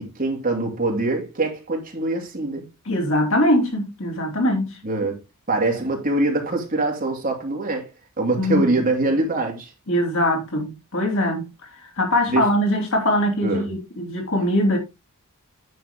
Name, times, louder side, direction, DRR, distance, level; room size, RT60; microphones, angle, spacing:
voice 1, 0.0-2.7 4.8-5.2 5.5-7.9 8.2-9.7 12.3-12.5 13.4-13.7, right 2 dB, 40° right, 2.7 m, -23 dB
voice 2, 2.9-4.8 8.4-8.7 9.9-11.5 12.0-14.8, left 1 dB, 60° left, 3.1 m, -22 dB
9.4 x 6.4 x 3.7 m
head